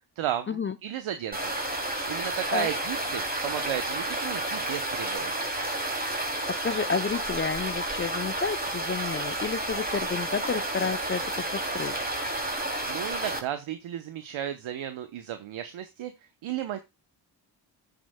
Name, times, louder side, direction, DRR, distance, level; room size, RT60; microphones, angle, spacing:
voice 1, 0.2-1.5 2.1-5.3 12.9-16.1 16.4-16.8, right 10 dB, 75° right, 9 dB, 0.9 m, -34 dB
sound 1, 1.3-13.4, right 1 dB, 20° right, 2.8 m, -31 dB
voice 2, 6.5-11.9, left 5 dB, 25° left, 12 dB, 0.5 m, -31 dB
14.0 x 9.1 x 2.2 m, 0.21 s
supercardioid pair, 45°, 49 cm